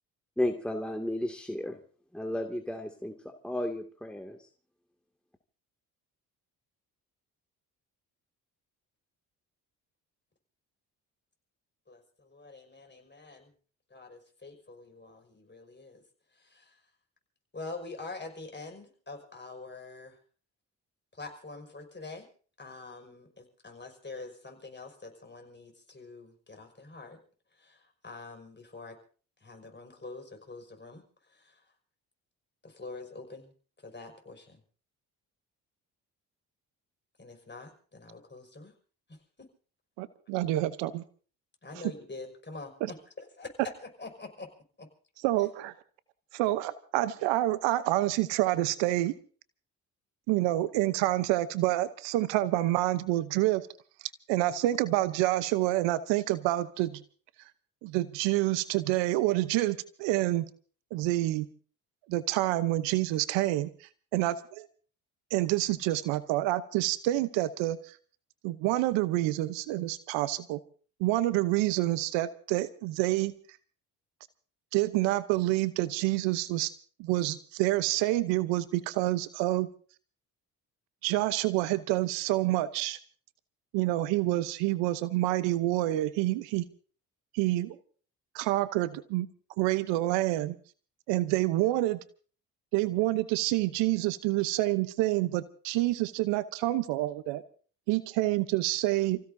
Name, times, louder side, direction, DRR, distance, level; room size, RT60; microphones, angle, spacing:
voice 1, 0.4-1.8 2.1-3.1 3.4-4.5, left 1 dB, ahead, 2 dB, 2.3 m, -33 dB
voice 2, 11.9-13.5 13.9-16.0 16.3-16.8 17.5-20.2 21.1-22.3 22.6-27.2 27.5-29.0 29.4-31.6 32.6-33.5 33.8-34.6 37.2-38.7 39.1-39.5 41.6-44.5 44.8-44.9, left 3 dB, 25° left, 3 dB, 5.6 m, -45 dB
voice 3, 40.0-41.0 42.8-42.9 45.2-45.7 46.3-49.1 50.3-53.7 54.3-57.0 57.8-60.5 60.9-61.5 62.1-64.7 65.3-68.0 68.4-70.6 71.0-73.3 74.7-76.7 77.0-79.7 81.0-83.0 83.7-86.6 87.3-87.8 88.3-89.3 89.6-90.5 91.1-92.0 92.7-97.4 97.9-99.2, right 16 dB, 80° right, 15 dB, 0.9 m, -28 dB
30.0 x 16.0 x 2.7 m, 0.42 s
hypercardioid pair, 50°, 44 cm